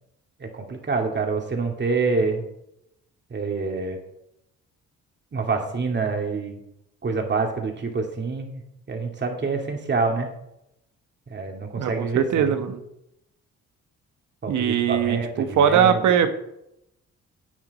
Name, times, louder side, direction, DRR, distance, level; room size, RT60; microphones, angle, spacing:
voice 1, 0.4-2.4 3.3-4.0 5.3-6.6 7.0-8.6 8.9-10.3 11.3-12.6 14.4-16.3, right 4 dB, 35° right, 2 dB, 2.5 m, -27 dB
voice 2, 11.8-12.8 14.5-16.3, right 8 dB, 75° right, 8 dB, 1.4 m, -21 dB
10.5 x 8.8 x 4.2 m, 0.81 s
cardioid pair, 90°, 30 cm